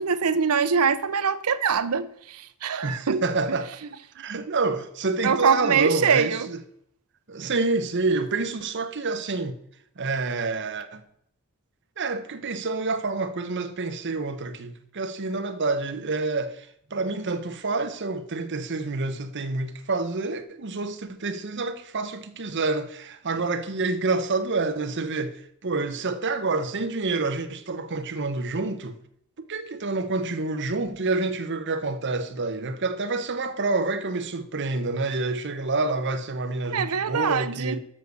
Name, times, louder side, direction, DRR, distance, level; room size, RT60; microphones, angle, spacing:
voice 1, 0.0-3.2 5.2-6.5 36.7-37.8, right 6 dB, 90° right, 0.7 m, -23 dB
voice 2, 2.8-3.7 4.1-6.6 7.3-9.6 10.0-11.0 12.0-29.0 29.4-37.8, right 3 dB, 55° right, 0.9 m, -28 dB
7.4 x 6.3 x 6.8 m
head